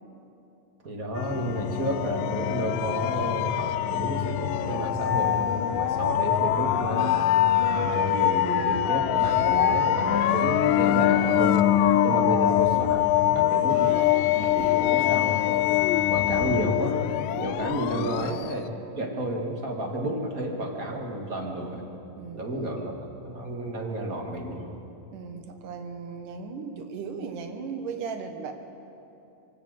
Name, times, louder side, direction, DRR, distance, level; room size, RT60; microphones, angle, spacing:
voice 1, 0.8-7.2 7.6-11.7 12.0-15.7 16.1-17.0 17.4-18.6 19.0-21.9 22.3-24.7, right 1 dB, 35° right, 1 dB, 1.6 m, -31 dB
sound 1, 1.2-18.7, left 12 dB, 90° left, 2.3 m, -24 dB
voice 2, 12.1-12.6 17.8-18.5 22.2-22.8 25.1-28.5, right 5 dB, 75° right, 6 dB, 2.8 m, -37 dB
23.5 x 17.0 x 6.6 m, 2.8 s
omnidirectional pair, 3.8 m